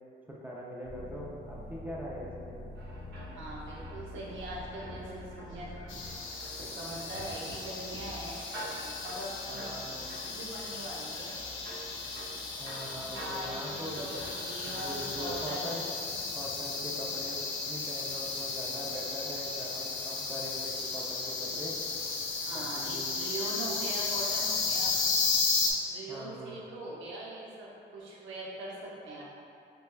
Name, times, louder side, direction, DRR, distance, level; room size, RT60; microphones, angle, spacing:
voice 1, 0.3-2.6 9.5-10.1 12.6-14.3 14.6-15.8 16.3-21.8 22.5-23.2 26.1-26.6, equal, 10° right, -5 dB, 0.4 m, -42 dB
sound 1, 0.8-6.1, left 1 dB, 65° left, 0.9 m, -46 dB
sound 2, 2.7-15.5, right 1 dB, 60° right, 1.0 m, -47 dB
voice 2, 3.4-5.8 6.6-8.4 9.0-9.8 10.3-11.3 12.9-15.8 22.3-25.0 25.9-29.2, right 1 dB, 85° right, -4 dB, 0.8 m, -41 dB
sound 3, 5.9-25.7, left 4 dB, 90° left, 0.6 m, -34 dB
6.5 x 2.3 x 2.2 m, 2.7 s
cardioid pair, 125°, 19 cm